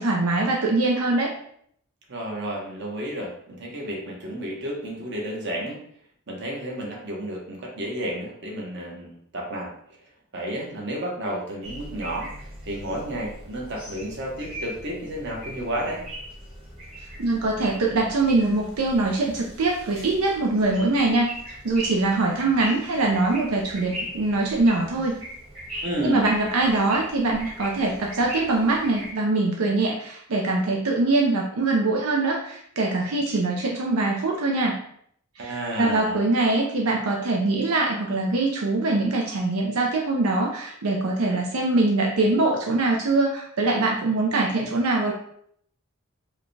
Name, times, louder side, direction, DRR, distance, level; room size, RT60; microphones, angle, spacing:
voice 1, 0.0-1.3 17.2-25.1 25.7-34.8 35.4-45.1, right 2 dB, 80° right, -1 dB, 0.6 m, -23 dB
voice 2, 2.1-5.8 6.3-9.7 10.3-16.0 25.8-26.3 35.4-36.2, right 1 dB, 55° right, -2 dB, 1.0 m, -31 dB
sound 1, 11.6-29.1, equal, 25° right, 1.3 m, -39 dB
4.6 x 2.2 x 3.2 m, 0.67 s
head